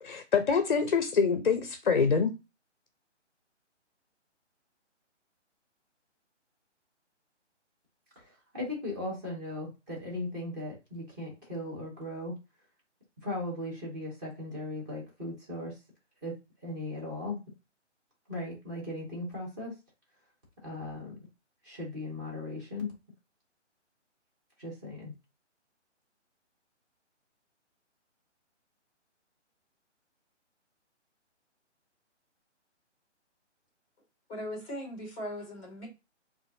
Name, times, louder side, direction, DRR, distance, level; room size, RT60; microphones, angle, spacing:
voice 1, 0.0-2.3, left 5 dB, 45° left, 0.5 m, -25 dB
voice 2, 8.2-12.3 13.2-15.7 16.2-16.3 16.6-17.4 18.3-19.7 20.6-21.1 21.6-22.9 24.6-25.1, left 2 dB, 15° right, 1.0 m, -37 dB
voice 3, 34.3-35.9, equal, 5° left, 0.7 m, -39 dB
3.9 x 2.5 x 2.5 m
hypercardioid pair, 160°, 36 cm